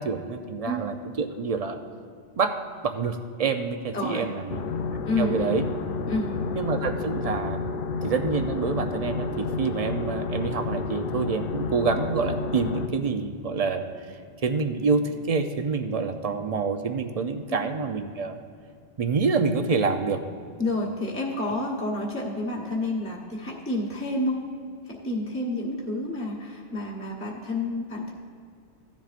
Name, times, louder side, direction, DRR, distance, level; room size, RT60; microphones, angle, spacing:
voice 1, 0.0-1.8 2.4-2.5 2.8-4.6 5.2-5.6 6.6-7.6 8.0-13.8 14.4-18.4 19.0-20.2, right 4 dB, 45° right, 7 dB, 0.5 m, -27 dB
voice 2, 3.9-4.3 5.0-5.6 6.1-6.3 17.5-17.6 20.6-24.4 24.9-28.1, left 2 dB, 10° left, -4 dB, 1.0 m, -29 dB
sound 1, 4.5-12.9, left 4 dB, 60° left, 0.7 m, -30 dB
16.0 x 10.5 x 2.5 m, 2.3 s
omnidirectional pair, 1.2 m